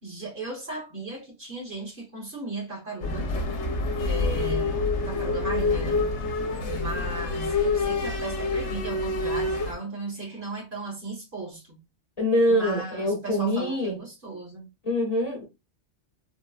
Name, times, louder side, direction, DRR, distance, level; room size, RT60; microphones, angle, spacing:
voice 1, 0.0-3.3 4.0-6.1 6.7-11.8 12.5-14.7, right 2 dB, 45° right, 1.2 m, -36 dB
sound 1, 3.0-9.7, left 3 dB, 65° left, 1.1 m, -27 dB
voice 2, 12.2-14.0 14.8-15.4, equal, 35° left, 0.9 m, -24 dB
3.8 x 2.0 x 2.3 m
omnidirectional pair, 1.3 m